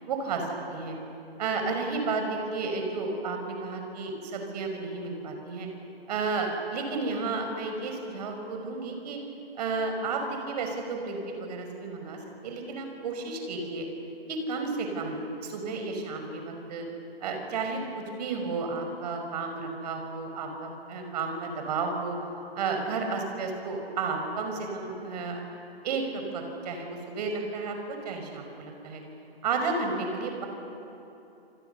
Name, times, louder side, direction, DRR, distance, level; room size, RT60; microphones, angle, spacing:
voice 1, 0.1-1.0 1.4-5.7 6.1-9.2 9.6-13.8 14.3-16.9 17.2-22.2 22.6-25.4 25.8-27.8 28.0-29.0 29.4-30.5, right 4 dB, 40° right, 4 dB, 5.5 m, -32 dB
27.5 x 27.5 x 7.0 m, 2.9 s
figure-of-eight pair, 135°, 32 cm